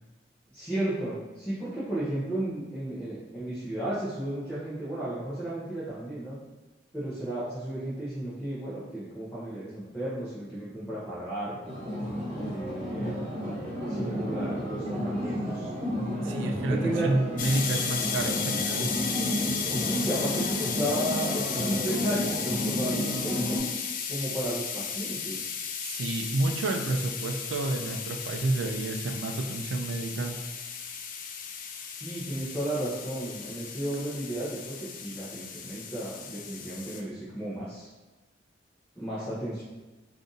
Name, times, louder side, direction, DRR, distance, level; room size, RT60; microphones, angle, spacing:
voice 1, 0.5-6.4 6.9-11.6 12.4-13.1 13.9-15.7 16.7-17.1 19.6-23.7 24.1-25.4 32.0-37.9 39.0-39.6, right 1 dB, 5° left, -10 dB, 0.6 m, -34 dB
sound 1, 11.6-23.6, equal, 35° right, 1.2 m, -32 dB
voice 2, 16.2-18.9 25.8-30.4, right 2 dB, 75° right, 4 dB, 0.4 m, -30 dB
sound 2, 17.4-37.0, left 7 dB, 45° left, 0.3 m, -35 dB
2.5 x 2.5 x 3.8 m, 1.2 s
head